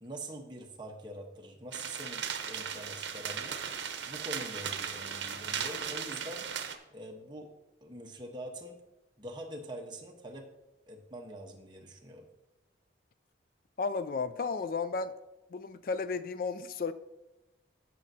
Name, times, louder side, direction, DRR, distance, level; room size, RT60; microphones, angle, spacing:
voice 1, 0.0-3.6 4.1-6.5 6.9-7.5 7.8-8.8 9.2-10.5 10.9-12.3, right 1 dB, 25° right, 1 dB, 1.0 m, -44 dB
sound 1, 1.7-6.7, right 7 dB, 70° right, 0.8 m, -37 dB
voice 2, 13.8-15.1 15.5-16.9, left 4 dB, 50° left, 13 dB, 0.3 m, -33 dB
15.0 x 6.3 x 2.8 m, 1.0 s
head